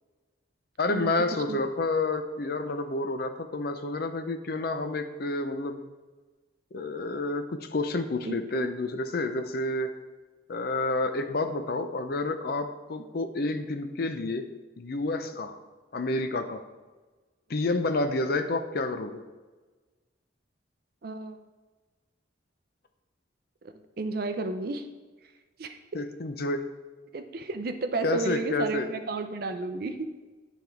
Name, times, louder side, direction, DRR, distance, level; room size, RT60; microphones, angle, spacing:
voice 1, 0.8-5.9 6.7-9.9 10.5-14.4 14.8-15.6 15.9-16.6 17.5-19.2 25.9-26.6 28.0-28.9, left 2 dB, 50° left, 8 dB, 0.5 m, -29 dB
voice 2, 8.2-8.7 21.0-21.4 23.6-24.9 25.6-25.8 27.1-30.1, right 3 dB, 50° right, 8 dB, 0.5 m, -32 dB
9.9 x 3.6 x 4.5 m, 1.3 s
head